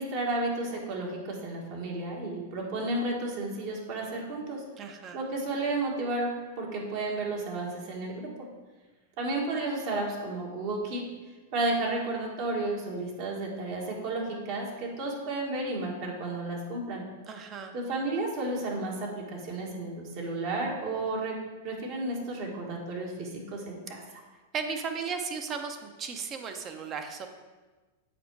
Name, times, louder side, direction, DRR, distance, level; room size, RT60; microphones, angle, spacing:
voice 1, 0.0-4.6 5.1-8.3 9.2-11.0 11.5-17.1 17.7-21.4 21.6-24.0, right 2 dB, 55° right, -2 dB, 1.7 m, -32 dB
voice 2, 4.8-5.2 17.3-17.8 24.1-24.2 24.5-27.3, right 5 dB, 35° right, 6 dB, 0.8 m, -35 dB
7.7 x 4.5 x 4.7 m, 1.3 s
hypercardioid pair, 115°, 0 cm